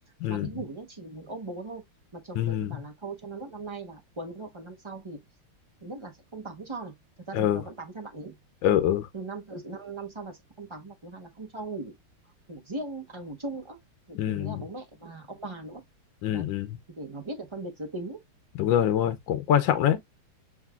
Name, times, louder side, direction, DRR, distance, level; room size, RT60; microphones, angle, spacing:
voice 1, 0.3-1.8 2.1-5.2 5.8-6.9 7.2-8.4 9.1-11.9 12.5-13.8 14.1-15.8 16.3-16.5 16.9-18.2, right 2 dB, 50° right, 0.3 m, -39 dB
voice 2, 2.4-2.8 7.3-7.6 8.6-9.1 14.1-14.6 16.2-16.8 18.6-20.0, left 10 dB, 70° left, 1.3 m, -25 dB
7.3 x 3.2 x 2.3 m
omnidirectional pair, 2.3 m